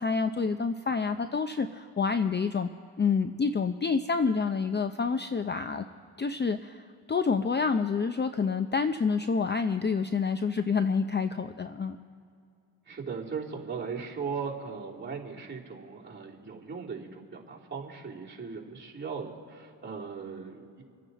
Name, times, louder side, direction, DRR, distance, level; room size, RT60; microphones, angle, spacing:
voice 1, 0.0-2.7 3.0-5.8 6.2-6.8 7.1-12.0, left 5 dB, 25° left, 9 dB, 0.6 m, -28 dB
voice 2, 12.9-20.8, right 5 dB, 25° right, -4 dB, 3.2 m, -38 dB
27.0 x 9.2 x 4.1 m, 2.3 s
cardioid pair, 70°, 45 cm